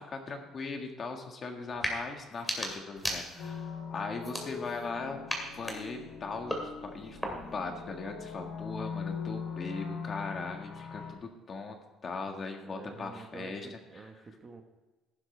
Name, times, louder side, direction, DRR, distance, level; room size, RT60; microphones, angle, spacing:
voice 1, 0.0-11.8 12.0-13.8, left 4 dB, 30° left, 4 dB, 1.7 m, -39 dB
sound 1, 1.7-2.0 2.3-3.6 4.2-4.9 5.3-7.6, equal, ahead, 2.2 m, -37 dB
sound 2, 3.4-11.1, left 6 dB, 60° left, 2.9 m, -41 dB
voice 2, 12.6-14.6, right 4 dB, 25° right, 4 dB, 1.2 m, -48 dB
15.5 x 11.5 x 3.3 m, 1.1 s
cardioid pair, 170°, 0 cm